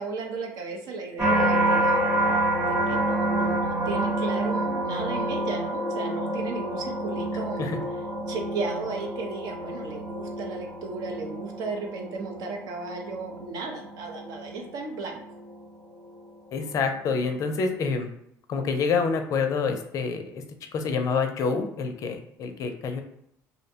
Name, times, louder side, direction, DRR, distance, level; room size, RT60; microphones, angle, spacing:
voice 1, 0.0-7.7 8.3-15.2, right 4 dB, 70° right, 2 dB, 0.6 m, -35 dB
sound 1, 1.2-16.4 16.9-17.3, right 1 dB, 15° right, 0.8 m, -28 dB
voice 2, 16.5-18.1 18.5-20.4 20.7-23.0, left 5 dB, 50° left, 6 dB, 0.4 m, -27 dB
2.6 x 2.1 x 2.7 m, 0.76 s
cardioid pair, 105°, 7 cm